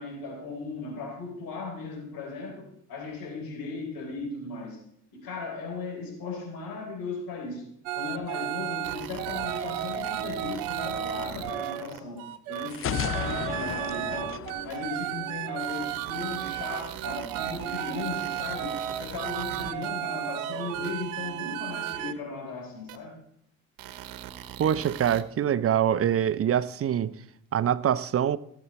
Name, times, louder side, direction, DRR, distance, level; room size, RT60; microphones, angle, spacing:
voice 1, 0.0-4.8 5.1-7.6 7.9-23.2, left 4 dB, 65° left, 4.0 m, -37 dB
sound 1, 7.9-11.8 12.2-22.1, right 12 dB, 80° right, 0.7 m, -33 dB
sound 2, 8.8-12.0 12.5-13.0 13.7-13.8 14.7-14.8 15.6-19.9 20.8-20.9 21.9-22.0 22.9-23.0 23.8-25.2, right 12 dB, 65° right, 1.1 m, -42 dB
sound 3, 12.7-15.6, left 10 dB, 35° left, 0.5 m, -33 dB
voice 2, 24.6-27.2 27.5-28.4, right 9 dB, 40° right, 0.7 m, -24 dB
16.5 x 7.2 x 4.2 m
hypercardioid pair, 60°, 37 cm